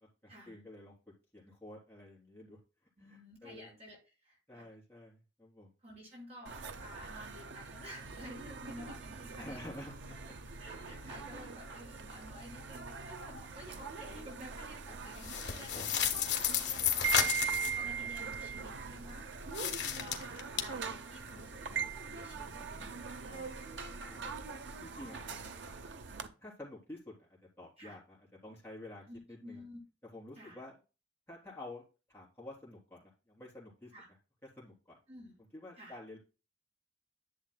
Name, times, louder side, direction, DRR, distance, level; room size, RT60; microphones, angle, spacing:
voice 1, 0.2-0.9 1.3-2.6 3.0-3.7 4.5-5.7 9.4-10.3 10.9-11.0 14.9-15.9 24.0-24.4 24.8-25.5 26.4-27.3 27.6-29.6 30.1-30.8 31.3-34.2 34.4-35.0 35.5-36.2, left 1 dB, 15° left, -4 dB, 3.5 m, -50 dB
voice 2, 3.0-4.0 4.2-4.6 5.8-9.7 10.6-16.8 17.7-19.2 20.0-23.7 25.2-25.3 27.8-28.0 29.1-29.8 30.3-30.6 33.9-34.1 35.1-35.3 35.8-36.0, equal, 35° right, -4 dB, 4.8 m, -51 dB
sound 1, 6.4-26.3, right 6 dB, 75° right, 0.7 m, -42 dB
sound 2, 15.2-17.8 19.5-20.6, left 9 dB, 70° left, 1.3 m, -32 dB
11.0 x 7.3 x 2.2 m, 0.33 s
head